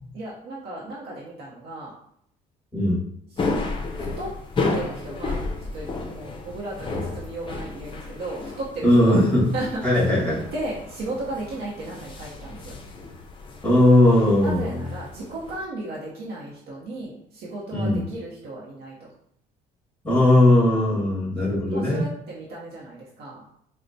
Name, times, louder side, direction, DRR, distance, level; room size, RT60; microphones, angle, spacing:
voice 1, 0.1-1.9 3.3-3.6 3.9-4.3 4.7-9.2 9.5-10.0 10.5-12.8 14.4-19.1 21.7-23.4, right 2 dB, 70° right, -5 dB, 0.7 m, -35 dB
sound 1, 3.4-15.6, left 3 dB, 30° left, 0.5 m, -33 dB
voice 2, 8.8-9.5 9.8-10.5 13.6-14.8 17.7-18.0 20.0-22.0, left 1 dB, 5° left, -5 dB, 1.5 m, -18 dB
4.2 x 2.1 x 2.6 m, 0.72 s
cardioid pair, 110°, 17 cm